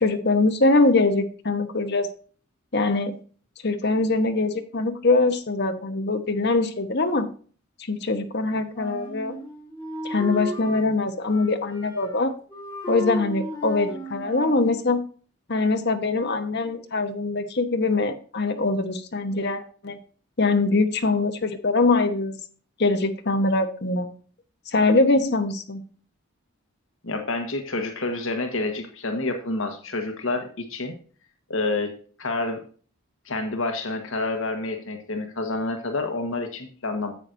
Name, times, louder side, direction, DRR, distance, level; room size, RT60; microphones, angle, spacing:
voice 1, 0.0-2.1 2.7-3.2 3.6-7.3 7.9-9.4 10.0-12.3 12.9-15.0 15.5-20.0 20.4-22.4 22.8-24.1 24.7-25.8, left 3 dB, 50° left, 8 dB, 1.0 m, -23 dB
Wind instrument woodwind instrument, 8.7-10.8 11.2-12.2 12.5-14.7, equal, 10° left, 3.1 m, -35 dB
voice 2, 27.0-30.9 31.5-31.9 32.2-32.6 33.2-37.1, left 2 dB, 65° left, 5 dB, 1.3 m, -28 dB
10.5 x 7.8 x 2.6 m, 0.41 s
head